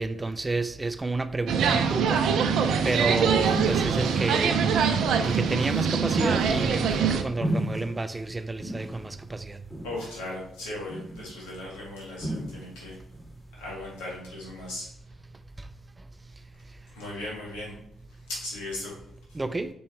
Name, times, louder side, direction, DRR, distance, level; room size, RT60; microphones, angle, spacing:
voice 1, 0.0-2.2 2.8-4.6 5.2-9.6 19.3-19.7, right 2 dB, 25° right, 0.5 m, -30 dB
sound 1, 1.5-7.2, right 6 dB, 75° right, 0.5 m, -24 dB
sound 2, 2.7-4.4 4.9-5.5 6.1-7.1 7.4-8.2 8.6-9.1 9.7-10.2 10.9-11.3 12.2-12.8 13.1-13.3, equal, 15° left, 2.6 m, -34 dB
voice 2, 9.8-13.0 13.6-14.9 17.0-17.7 18.3-18.9, left 1 dB, 90° left, 2.2 m, -37 dB
5.3 x 4.6 x 4.4 m
hypercardioid pair, 45°, 0 cm